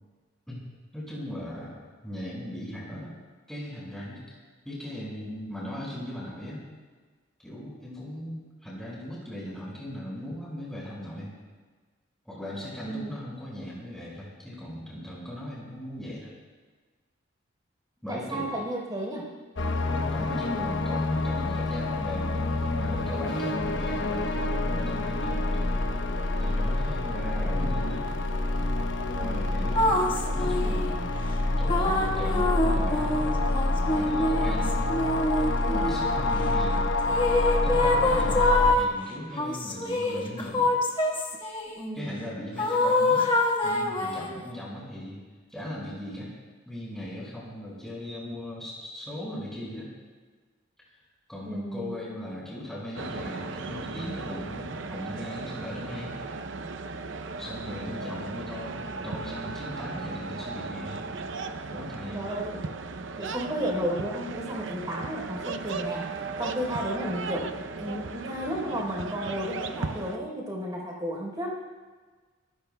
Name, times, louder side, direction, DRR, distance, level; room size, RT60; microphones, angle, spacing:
voice 1, 0.9-1.8 2.0-3.2 3.5-4.4 4.6-6.6 7.4-11.3 12.2-16.3 18.0-18.5 19.9-25.7 26.4-28.1 29.2-31.1 31.6-33.5 33.8-36.9 37.6-40.7 41.9-43.3 43.6-45.2 45.5-46.3 46.7-49.9 51.3-56.2 57.4-61.1 61.7-62.2, left 1 dB, ahead, -6 dB, 5.5 m, -38 dB
voice 2, 12.9-13.2 18.1-19.3 29.1-29.5 35.6-35.9 41.7-42.2 51.5-52.0 62.1-62.8 63.2-66.1 66.4-71.5, equal, 20° right, -2 dB, 3.9 m, -33 dB
sound 1, 19.6-38.7, left 2 dB, 65° left, 0.9 m, -27 dB
sound 2, 29.8-30.9 31.7-36.0 37.1-38.9 39.4-41.7 42.6-44.4, left 2 dB, 25° left, 1.5 m, -25 dB
sound 3, 52.9-70.2, right 4 dB, 65° right, 0.7 m, -36 dB
26.5 x 16.0 x 2.3 m, 1.4 s
head